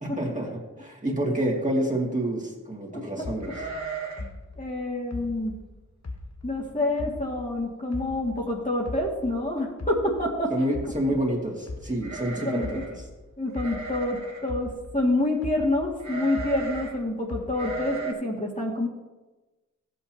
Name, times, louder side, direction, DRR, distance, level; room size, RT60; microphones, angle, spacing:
voice 1, 0.0-3.5 10.5-12.8, right 1 dB, 25° right, -2 dB, 2.3 m, -28 dB
sound 1, 3.2-6.6 7.0-9.4 9.8-14.1 14.5-16.9 17.3-18.0, left 2 dB, 55° left, 1.2 m, -39 dB
sound 2, 3.4-4.4 4.6-4.7 5.2-5.5 6.0-6.1 6.4-6.9 7.3-7.4 8.5-8.6 8.9-9.3 12.0-13.0 13.5-14.5 16.0-17.0 17.5-18.1, right 3 dB, 60° right, 2.2 m, -36 dB
voice 2, 4.6-5.6 6.4-10.7 12.4-12.8 13.4-18.9, left 1 dB, 25° left, -3 dB, 2.1 m, -27 dB
14.5 x 8.2 x 2.9 m, 1.2 s
wide cardioid pair, 50°, 31 cm